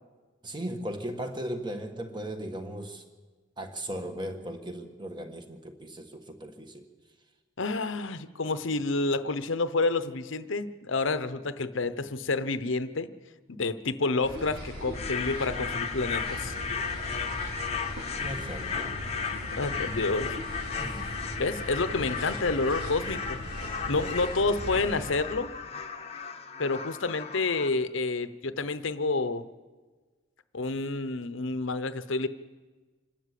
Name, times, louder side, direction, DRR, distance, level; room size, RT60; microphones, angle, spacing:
voice 1, 0.4-3.0 3.6-6.8 18.2-18.9 20.8-21.1, right 1 dB, 20° right, 6 dB, 1.6 m, -37 dB
voice 2, 7.6-13.1 13.5-16.5 19.5-20.4 21.4-23.4 23.9-25.5 26.6-29.5 30.5-32.3, left 3 dB, 65° left, 13 dB, 0.9 m, -29 dB
sound 1, 14.2-25.2, equal, 85° right, 4.9 m, -39 dB
sound 2, 14.9-27.7, left 6 dB, 30° left, 1.0 m, -35 dB
26.5 x 12.5 x 8.4 m, 1.4 s
head